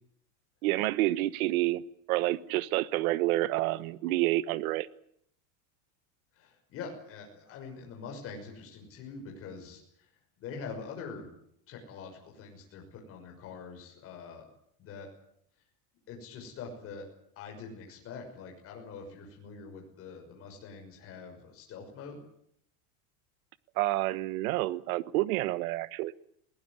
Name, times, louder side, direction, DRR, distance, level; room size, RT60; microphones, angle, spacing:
voice 1, 0.6-1.8 2.1-4.9 23.8-26.1, right 17 dB, 70° right, 17 dB, 1.3 m, -28 dB
voice 2, 6.3-10.1 10.4-11.3 11.7-14.5 14.8-15.1 16.1-17.1 17.4-22.2, left 5 dB, 30° left, 1 dB, 6.0 m, -44 dB
21.5 x 18.5 x 9.7 m, 0.71 s
supercardioid pair, 170°, 44 cm